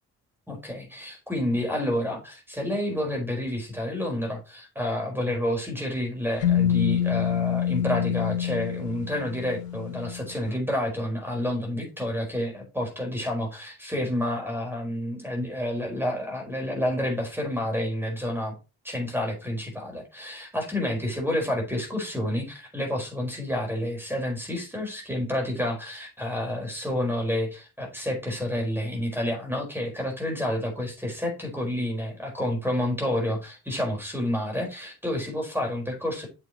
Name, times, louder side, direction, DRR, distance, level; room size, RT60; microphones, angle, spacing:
voice 1, 0.5-18.5 18.8-36.3, left 1 dB, 5° right, 1 dB, 4.4 m, -29 dB
sound 1, 6.4-10.3, left 10 dB, 80° left, 0.9 m, -26 dB
8.5 x 6.9 x 2.9 m, 0.29 s
figure-of-eight pair, 40°, 46 cm